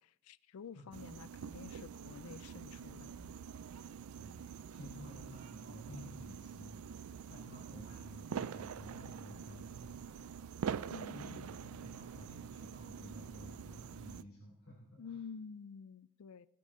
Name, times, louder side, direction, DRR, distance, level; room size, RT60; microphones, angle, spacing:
voice 1, 0.0-3.1 10.9-12.0 15.0-16.5, left 6 dB, 85° left, 0.4 m, -50 dB
sound 1, 0.9-14.2, right 7 dB, 85° right, 0.4 m, -45 dB
sound 2, 2.7-4.1 4.6-11.5, equal, 50° left, 5.3 m, -69 dB
voice 2, 4.2-10.5 11.1-15.2, equal, 70° left, 3.8 m, -53 dB
19.5 x 8.4 x 3.8 m
head